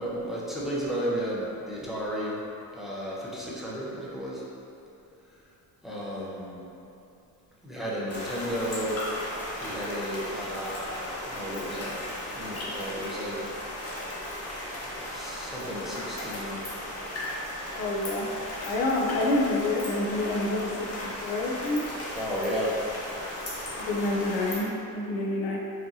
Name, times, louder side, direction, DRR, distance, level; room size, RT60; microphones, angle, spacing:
voice 1, 0.0-2.4 2.7-4.4 5.8-6.6 7.6-9.1 9.6-12.0 12.3-13.4 14.7-16.6 22.1-22.8, equal, ahead, -7 dB, 0.5 m, -33 dB
sound 1, 8.1-24.6, left 1 dB, 40° left, 0.9 m, -36 dB
voice 2, 17.8-18.3 18.6-20.7 21.0-21.8 23.7-25.6, left 2 dB, 85° left, -1 dB, 0.5 m, -28 dB
4.8 x 2.7 x 2.6 m, 2.7 s
cardioid pair, 145°, 37 cm